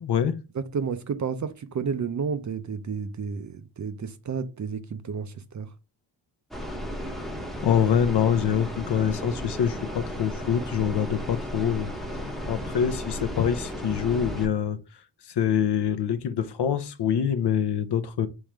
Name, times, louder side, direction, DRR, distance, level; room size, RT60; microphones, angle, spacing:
voice 1, 0.0-0.4 7.6-11.9 12.5-14.8 15.3-18.3, left 8 dB, 55° left, 0.7 m, -25 dB
voice 2, 0.5-5.7, right 6 dB, 40° right, 0.5 m, -31 dB
sound 1, 6.5-14.5, equal, ahead, 0.8 m, -34 dB
3.6 x 3.1 x 4.6 m
cardioid pair, 65°, 49 cm